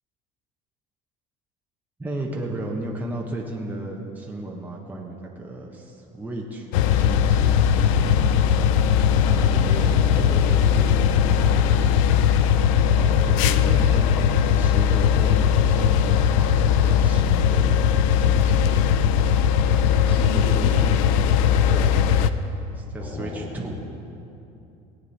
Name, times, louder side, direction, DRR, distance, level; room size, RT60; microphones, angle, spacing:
voice 1, 2.0-8.3 13.0-17.7 18.2-18.8 21.7-22.1 22.7-23.7, right 2 dB, 10° right, -2 dB, 1.4 m, -34 dB
sound 1, 6.7-22.3, left 8 dB, 90° left, 0.5 m, -19 dB
voice 2, 9.3-12.0 20.0-21.2 23.0-23.5, left 1 dB, 30° left, -3 dB, 2.0 m, -33 dB
17.5 x 8.4 x 4.3 m, 2.7 s
supercardioid pair, 115°, 16 cm